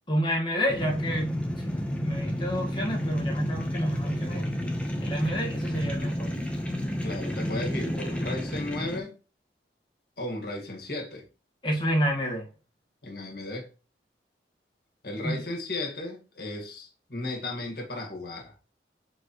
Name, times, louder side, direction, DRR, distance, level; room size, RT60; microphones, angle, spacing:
voice 1, 0.1-4.5 5.0-6.3 11.6-12.5 15.2-15.4, equal, 25° left, 1.6 m, -29 dB
sound 1, 0.7-9.0, equal, 5° left, 0.9 m, -31 dB
voice 2, 7.0-9.2 10.2-11.3 13.0-13.7 15.0-18.5, left 2 dB, 60° left, 1.9 m, -35 dB
7.4 x 4.4 x 3.1 m
head